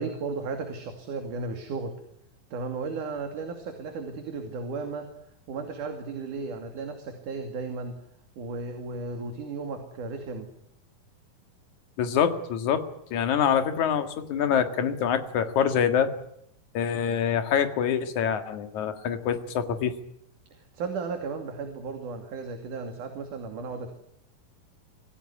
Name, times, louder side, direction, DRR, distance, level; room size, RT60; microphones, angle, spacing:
voice 1, 0.0-1.9 2.5-5.1 5.5-7.9 8.4-10.5 20.5-24.0, right 4 dB, 60° right, 5 dB, 4.0 m, -35 dB
voice 2, 12.0-12.8 13.1-16.1 16.7-19.9, left 8 dB, 60° left, 8 dB, 3.0 m, -25 dB
26.5 x 16.5 x 9.8 m, 0.76 s
omnidirectional pair, 4.1 m